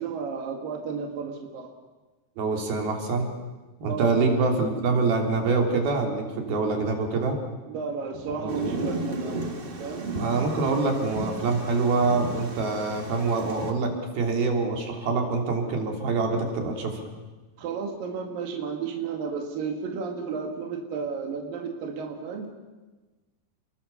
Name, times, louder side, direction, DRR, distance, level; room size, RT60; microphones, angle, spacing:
voice 1, 0.0-1.7 3.9-4.6 7.7-9.5 9.8-10.1 17.6-22.5, right 5 dB, 70° right, 3 dB, 3.5 m, -33 dB
voice 2, 2.4-3.3 3.8-7.4 8.4-8.7 10.2-17.0, right 3 dB, 85° right, 2 dB, 5.2 m, -25 dB
Thunder, 8.5-13.7, right 2 dB, 50° right, 0.6 m, -34 dB
29.5 x 21.5 x 7.1 m, 1.2 s
omnidirectional pair, 4.2 m